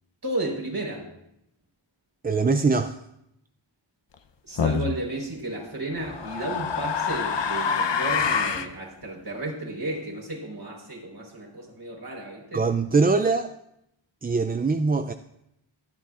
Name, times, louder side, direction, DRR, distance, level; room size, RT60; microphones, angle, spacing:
voice 1, 0.2-1.1 4.5-12.6, right 2 dB, 50° right, -1 dB, 4.3 m, -33 dB
voice 2, 2.2-3.0 12.5-13.5 14.2-15.1, right 4 dB, 20° right, 8 dB, 0.3 m, -22 dB
sound 1, 4.6-5.0 6.0-8.7, left 6 dB, 60° left, 0.8 m, -26 dB
24.5 x 8.6 x 2.5 m, 0.81 s
wide cardioid pair, 70°, 48 cm